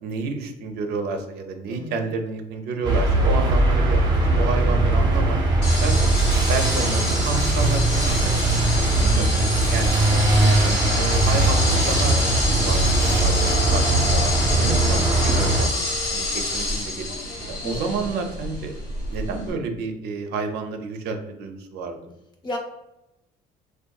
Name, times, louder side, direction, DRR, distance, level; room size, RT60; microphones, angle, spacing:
voice 1, 0.0-4.0 4.3-5.4 5.8-6.1 6.5-8.3 8.8-14.3 14.6-15.7 16.1-17.1 17.4-18.7 19.1-22.0, right 4 dB, 75° right, 5 dB, 0.4 m, -30 dB
voice 2, 1.7-2.0 17.6-18.0 22.4-22.6, left 1 dB, 25° left, 1 dB, 0.6 m, -34 dB
sound 1, 2.8-15.7, right 2 dB, 25° right, 0.6 m, -20 dB
sound 2, 5.6-19.5, left 2 dB, 85° left, 1.2 m, -27 dB
sound 3, 10.0-15.4, right 1 dB, 60° left, 0.8 m, -41 dB
2.6 x 2.2 x 2.2 m, 0.90 s
cardioid pair, 110°, 17 cm